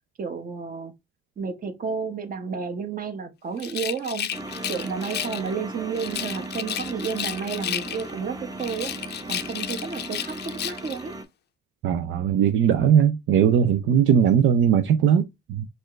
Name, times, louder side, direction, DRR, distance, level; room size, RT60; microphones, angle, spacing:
voice 1, 0.2-0.9 1.4-4.3 4.7-8.9 9.3-11.1, right 6 dB, 45° right, 1.0 m, -31 dB
Rattle, 3.6-5.5 5.9-8.2 8.6-11.0, left 11 dB, 55° left, 0.5 m, -33 dB
sound 1, 4.3-11.2, right 2 dB, 20° right, 0.7 m, -37 dB
voice 2, 11.8-15.7, right 8 dB, 75° right, 0.5 m, -19 dB
4.3 x 2.5 x 3.1 m
cardioid pair, 90°, 20 cm